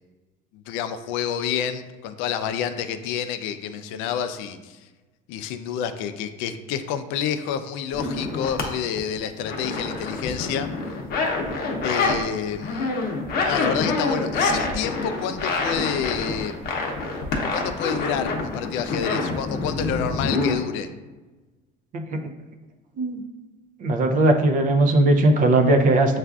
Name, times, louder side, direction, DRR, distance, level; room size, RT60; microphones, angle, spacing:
voice 1, 0.5-4.8 5.3-10.7 11.8-12.9 13.4-16.5 17.3-20.9, left 8 dB, 75° left, 10 dB, 0.4 m, -29 dB
sound 1, 7.9-8.6 9.0-12.2 12.5-20.6, left 3 dB, 50° left, 0.8 m, -26 dB
voice 2, 21.9-22.3 23.0-23.2 23.8-26.2, right 2 dB, 45° right, 5 dB, 0.5 m, -19 dB
6.7 x 2.4 x 2.3 m, 1.2 s
cardioid pair, 125°, 20 cm